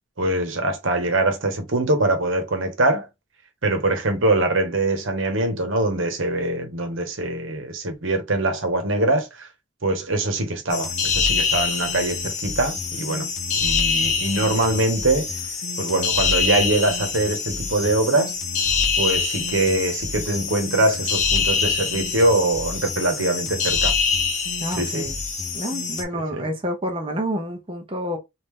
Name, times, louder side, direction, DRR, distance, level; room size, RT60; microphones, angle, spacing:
voice 1, 0.2-3.1 3.6-9.5 9.8-13.3 13.5-15.3 15.8-18.3 19.0-23.9 24.8-25.1 26.1-26.4, right 2 dB, 80° right, 1.1 m, -23 dB
sound 1, 10.7-26.0, left 5 dB, 35° left, 0.9 m, -25 dB
voice 2, 24.6-25.1 25.5-28.2, equal, 25° right, 0.7 m, -28 dB
3.2 x 2.6 x 3.6 m
head